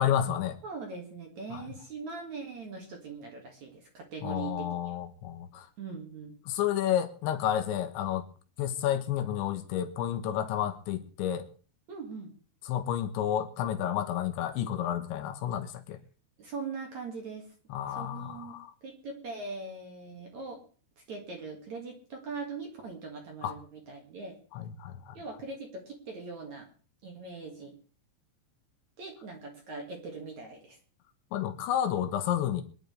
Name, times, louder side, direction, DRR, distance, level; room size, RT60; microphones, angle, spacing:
voice 1, 0.0-0.6 1.5-1.6 4.2-5.7 6.5-8.2 8.6-11.5 12.7-16.0 17.7-18.7 23.4-23.5 24.5-25.2 31.3-32.6, left 10 dB, 80° left, 8 dB, 3.4 m, -30 dB
voice 2, 0.6-4.9 5.8-6.4 11.9-12.3 16.4-17.5 17.9-18.6 18.8-20.6 21.1-24.4 25.1-26.7 27.0-27.8 29.0-30.8, right 4 dB, 50° right, 1 dB, 2.7 m, -41 dB
24.5 x 10.5 x 3.4 m, 0.39 s
omnidirectional pair, 5.4 m